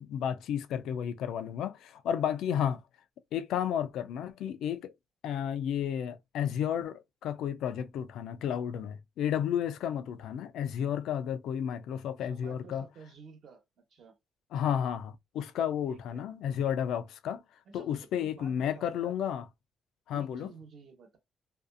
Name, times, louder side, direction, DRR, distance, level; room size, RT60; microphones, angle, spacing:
voice 1, 0.0-2.8 3.3-4.9 5.2-12.9 14.5-17.4 17.7-19.5 20.1-20.5, left 9 dB, 85° left, 0.3 m, -32 dB
voice 2, 12.2-13.6 13.9-14.1 15.9-16.2 17.7-19.1 20.1-21.2, right 5 dB, 65° right, 1.0 m, -52 dB
2.6 x 2.3 x 2.5 m
cardioid pair, 95°, 0 cm